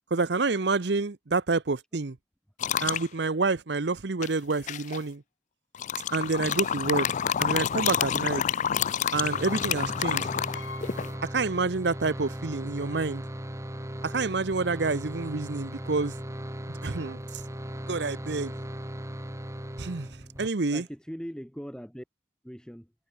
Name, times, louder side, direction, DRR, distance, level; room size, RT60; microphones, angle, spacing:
voice 1, 0.1-2.2 2.8-5.2 6.1-7.1 7.4-8.4 9.1-10.3 11.3-13.2 14.0-16.1 16.7-17.2 17.9-18.5 19.8-20.1 20.4-20.8, right 3 dB, 60° right, 0.8 m, -28 dB
sound 1, 2.6-3.0 4.2-5.0 5.7-11.1, left 8 dB, 40° left, 0.3 m, -28 dB
sound 2, 9.1-20.5, equal, 15° right, 3.0 m, -38 dB
Piano, 10.5-12.4 12.7-12.8 13.9-14.0 14.3-14.6, left 4 dB, 70° left, 3.7 m, -47 dB
voice 2, 20.6-22.0 22.4-22.9, equal, 5° left, 2.8 m, -40 dB
head